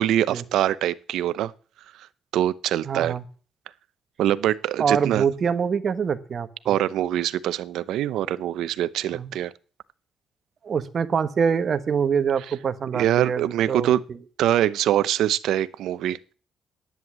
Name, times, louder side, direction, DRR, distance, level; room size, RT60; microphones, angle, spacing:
voice 1, 0.0-1.5 2.3-3.1 4.2-5.2 6.7-9.5 12.9-14.0 14.4-16.3, right 12 dB, 85° right, 0.7 m, -23 dB
voice 2, 2.8-3.2 4.8-6.8 9.1-9.3 10.6-14.2, right 6 dB, 50° right, 1.3 m, -25 dB
10.5 x 9.6 x 7.4 m
cardioid pair, 90°, 0 cm